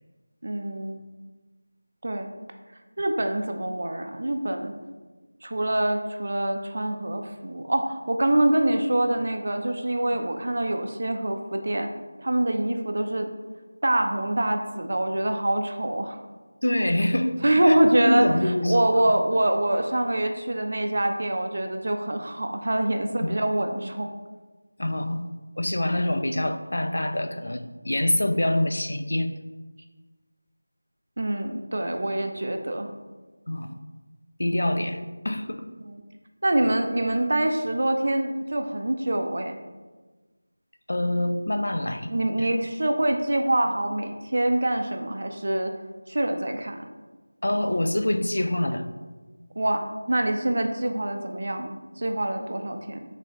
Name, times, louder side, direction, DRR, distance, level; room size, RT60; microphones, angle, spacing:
voice 1, 0.4-1.0 2.0-2.3 3.0-4.7 5.4-11.9 12.2-13.3 13.8-16.2 17.4-24.1 31.2-32.9 35.9-36.0 36.4-39.6 42.1-45.7 46.1-46.8 49.6-53.0, right 1 dB, 40° right, 5 dB, 0.4 m, -25 dB
voice 2, 16.6-17.4 17.6-19.1 24.8-25.2 25.6-29.4 33.5-33.8 34.4-35.6 40.9-42.1 47.4-48.9, left 1 dB, 65° left, 8 dB, 0.4 m, -25 dB
4.1 x 3.3 x 3.7 m, 1.3 s
figure-of-eight pair, 180°, 0 cm